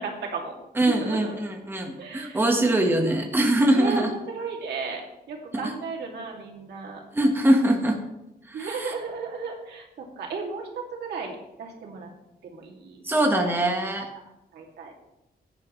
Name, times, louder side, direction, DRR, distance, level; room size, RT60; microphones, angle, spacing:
voice 1, 0.0-1.4 2.0-2.7 3.7-5.0 5.3-7.0 8.5-10.7 11.0-12.1 12.4-13.5 14.5-14.9, right 4 dB, 90° right, -1 dB, 2.6 m, -35 dB
voice 2, 0.8-4.1 7.1-8.0 8.5-8.9 13.0-14.1, right 1 dB, 15° right, 2 dB, 1.4 m, -22 dB
15.5 x 9.9 x 3.2 m, 0.92 s
wide cardioid pair, 145°, 17 cm